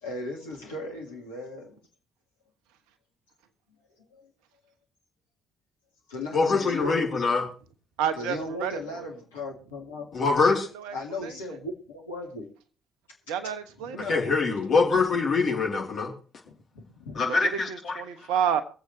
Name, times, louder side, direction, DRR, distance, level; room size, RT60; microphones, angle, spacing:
voice 1, 0.0-1.8 3.9-4.3 6.1-6.9 8.1-10.2 10.9-12.5 13.8-14.2 16.5-17.2, left 1 dB, 75° left, -1 dB, 2.7 m, -37 dB
voice 2, 6.3-7.5 10.1-10.7 14.1-16.1 17.2-18.0, left 4 dB, 45° left, -1 dB, 3.5 m, -24 dB
voice 3, 8.0-9.0 10.7-10.9 11.2-11.3 13.3-14.2 17.2-18.6, right 8 dB, 65° right, 11 dB, 1.2 m, -30 dB
24.0 x 8.1 x 3.3 m, 0.38 s
figure-of-eight pair, 45°, 0 cm